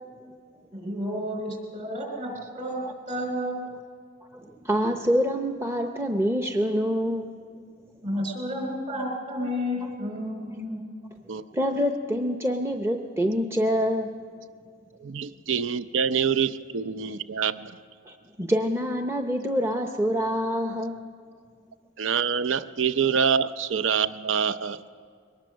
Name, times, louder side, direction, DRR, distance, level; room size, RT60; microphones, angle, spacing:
voice 1, 0.7-3.6 8.0-10.8, equal, 40° right, 1 dB, 4.5 m, -31 dB
voice 2, 4.3-7.3 9.8-9.9 11.5-14.1 18.1-21.0, equal, 15° right, 4 dB, 0.7 m, -26 dB
voice 3, 15.0-17.8 22.0-24.8, right 6 dB, 75° right, 13 dB, 0.6 m, -26 dB
22.5 x 19.5 x 6.3 m, 2.1 s
head